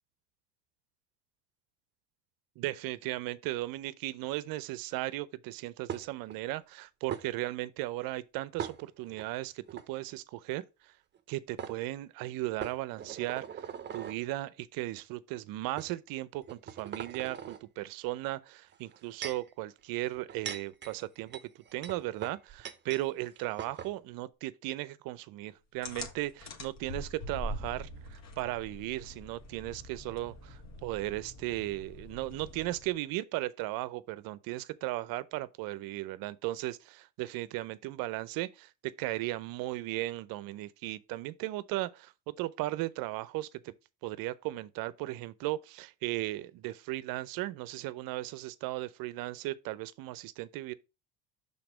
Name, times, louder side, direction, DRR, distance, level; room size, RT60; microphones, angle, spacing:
voice 1, 2.6-10.6 11.3-43.7 44.0-50.7, right 17 dB, 55° right, 0.6 m, -36 dB
sound 1, 5.9-6.4 7.1-7.2 8.6-9.3 9.7-9.9 11.1-11.2 11.6-11.8 12.6-14.2 15.0-15.1 15.8-15.9 16.4-17.6 18.7-19.5 20.1-23.1 23.3-23.4 23.6-23.9, right 8 dB, 25° right, 0.8 m, -41 dB
sound 2, 25.8-33.0, left 1 dB, 40° left, 1.7 m, -44 dB
5.9 x 3.7 x 5.0 m
hypercardioid pair, 80°, 40 cm